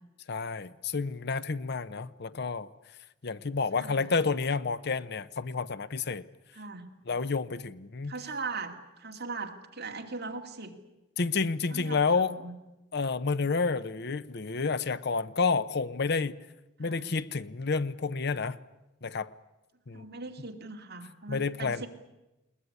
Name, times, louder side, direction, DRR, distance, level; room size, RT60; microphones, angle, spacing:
voice 1, 0.3-2.7 3.2-6.2 7.1-8.1 11.2-12.3 12.9-16.3 16.8-18.6 19.0-19.3 19.9-20.0 21.3-21.9, left 4 dB, 55° left, 15 dB, 0.7 m, -30 dB
voice 2, 3.7-4.2 6.5-6.9 8.1-10.7 11.7-12.5 16.8-17.1 19.9-21.9, right 4 dB, 55° right, 2 dB, 2.5 m, -40 dB
21.0 x 20.0 x 9.7 m, 1.0 s
head